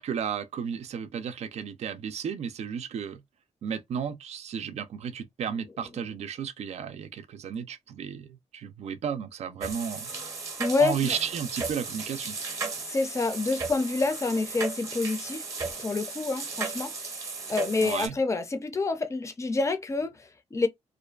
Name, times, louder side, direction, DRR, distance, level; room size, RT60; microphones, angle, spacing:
voice 1, 0.0-3.2 3.6-10.1 10.8-12.4 17.8-18.1, right 7 dB, 65° right, 0.4 m, -33 dB
sound 1, 9.6-18.1, right 4 dB, 25° right, 0.7 m, -35 dB
voice 2, 10.6-11.2 12.8-15.5 15.8-20.7, left 3 dB, 25° left, 0.5 m, -28 dB
2.5 x 2.2 x 2.3 m
cardioid pair, 110°, 12 cm